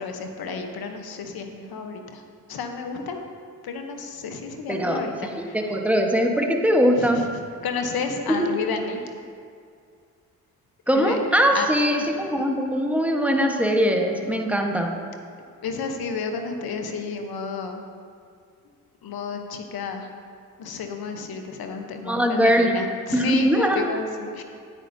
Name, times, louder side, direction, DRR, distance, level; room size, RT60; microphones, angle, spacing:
voice 1, 0.0-2.2 2.5-3.2 3.6-5.7 7.0-7.3 7.6-9.0 10.9-11.2 11.5-11.7 12.0-12.1 15.6-17.8 19.0-20.1 20.6-24.4, left 5 dB, 70° left, 5 dB, 1.0 m, -31 dB
voice 2, 4.7-5.0 5.3-7.2 8.4-8.5 10.9-14.9 22.0-22.8 23.1-23.9, equal, 5° right, 2 dB, 1.2 m, -21 dB
9.9 x 9.1 x 2.7 m, 2.2 s
supercardioid pair, 50°, 38 cm